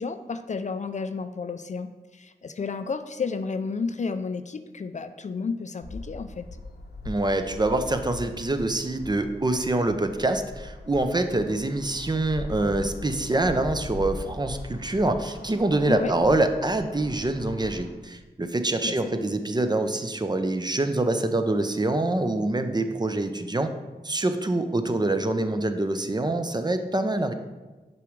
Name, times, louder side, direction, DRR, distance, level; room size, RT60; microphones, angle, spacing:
voice 1, 0.0-6.5 15.9-16.1 18.8-19.3, left 4 dB, 45° left, 9 dB, 0.4 m, -32 dB
sound 1, 5.8-17.9, left 2 dB, 75° left, 0.9 m, -40 dB
voice 2, 7.1-23.7 24.0-27.3, right 2 dB, 25° right, 7 dB, 0.6 m, -25 dB
6.8 x 4.9 x 3.1 m, 1.2 s
cardioid pair, 40°, 17 cm